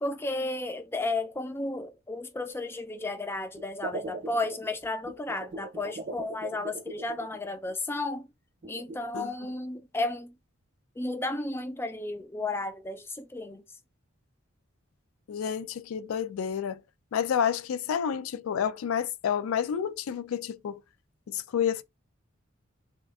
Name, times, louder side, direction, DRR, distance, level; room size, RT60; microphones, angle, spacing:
voice 1, 0.0-8.3 8.7-10.3 11.0-13.6, left 2 dB, 10° left, 0.3 m, -33 dB
sound 1, 3.5-7.7 8.6-9.3, right 2 dB, 45° right, 0.7 m, -40 dB
voice 2, 9.1-9.5 15.3-16.8 17.1-20.8 21.3-21.8, left 8 dB, 90° left, 0.3 m, -30 dB
3.7 x 2.4 x 2.3 m
head